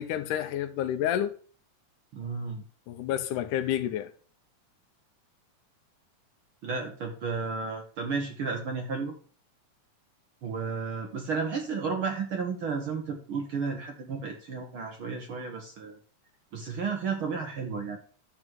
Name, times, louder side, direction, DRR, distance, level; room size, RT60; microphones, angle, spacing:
voice 1, 0.0-1.4 2.9-4.1, left 11 dB, 85° left, 2.3 m, -29 dB
voice 2, 2.1-2.6 6.6-9.1 10.4-16.0 16.5-18.0, right 5 dB, 55° right, 1.6 m, -33 dB
11.0 x 3.9 x 7.6 m
omnidirectional pair, 3.6 m